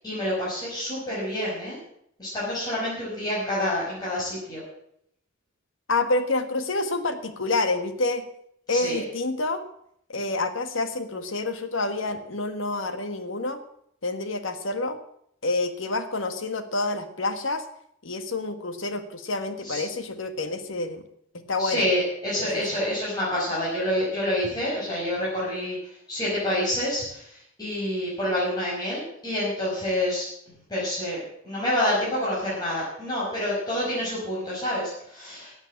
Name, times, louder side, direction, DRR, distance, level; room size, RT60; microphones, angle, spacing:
voice 1, 0.0-1.8 2.2-4.6 8.7-9.0 19.6-19.8 21.6-25.8 26.1-30.3 30.7-31.2 31.4-35.6, left 1 dB, 20° left, -9 dB, 5.3 m, -27 dB
voice 2, 5.9-8.2 8.7-9.6 10.1-13.6 14.0-15.0 15.4-17.6 18.0-21.0 21.3-21.9 22.4-22.6, left 2 dB, 75° left, 9 dB, 1.5 m, -28 dB
12.0 x 7.9 x 8.7 m, 0.72 s
head